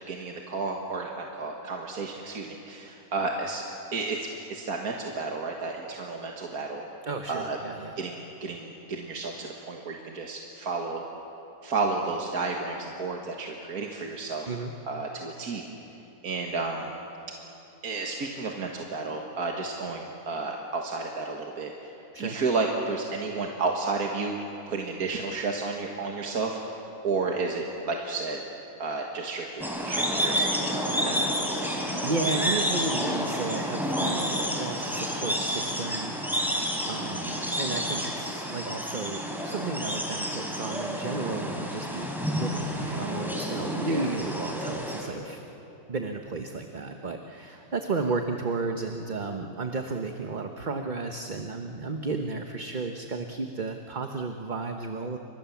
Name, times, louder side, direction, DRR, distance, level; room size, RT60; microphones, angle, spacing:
voice 1, 0.1-3.6 3.9-6.8 7.3-7.6 8.0-11.0 11.6-14.6 14.9-15.6 16.2-17.0 17.8-21.9 22.2-24.4 24.7-28.4 28.8-31.2 43.8-44.1, right 3 dB, 75° right, 1 dB, 2.1 m, -32 dB
voice 2, 7.0-7.9 14.4-14.7 22.1-22.4 31.6-45.4 45.9-55.2, right 3 dB, 35° right, 4 dB, 1.1 m, -33 dB
sound 1, 29.6-45.0, equal, ahead, 3.7 m, -30 dB
29.5 x 26.0 x 7.2 m, 2.9 s
omnidirectional pair, 1.6 m